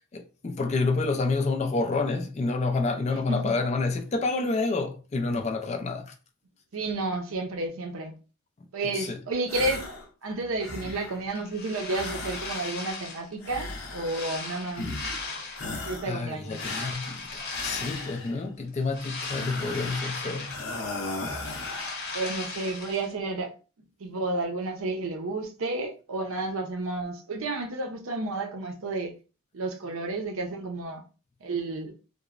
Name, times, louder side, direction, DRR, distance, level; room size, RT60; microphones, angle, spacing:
voice 1, 0.1-6.1 8.9-9.2 15.2-15.3 15.7-20.7, left 3 dB, 30° left, 0.3 m, -29 dB
voice 2, 3.1-3.5 6.7-8.1 8.7-9.9 10.2-14.8 15.8-16.6 22.1-23.6 24.0-29.1 29.5-31.0 31.4-31.9, right 2 dB, 75° right, 0.5 m, -31 dB
sound 1, 9.5-10.1 10.4-11.3 11.9-12.9 13.4-14.4 14.7-15.3 15.5-16.2 16.6-18.4 19.2-20.1 20.5-22.0, left 2 dB, 80° left, 0.6 m, -37 dB
sound 2, 11.3-13.3 13.8-15.8 16.4-18.3 18.7-20.9 21.2-23.1, left 3 dB, 50° left, 0.9 m, -37 dB
2.9 x 2.0 x 2.4 m
head